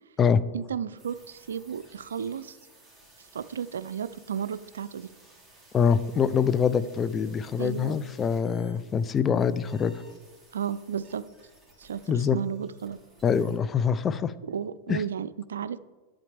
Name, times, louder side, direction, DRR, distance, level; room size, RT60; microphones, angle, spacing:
voice 1, 0.5-2.6 3.3-5.1 7.6-8.0 10.5-11.2 11.8-13.0 14.4-15.8, right 8 dB, 85° right, 15 dB, 0.4 m, -33 dB
sound 1, 1.0-13.6, right 1 dB, 5° right, 3.4 m, -57 dB
voice 2, 5.7-10.0 12.1-12.4 13.2-14.3 14.9-15.0, left 7 dB, 25° left, 14 dB, 0.5 m, -24 dB
11.0 x 8.5 x 3.4 m, 1.2 s
hypercardioid pair, 110°, 0 cm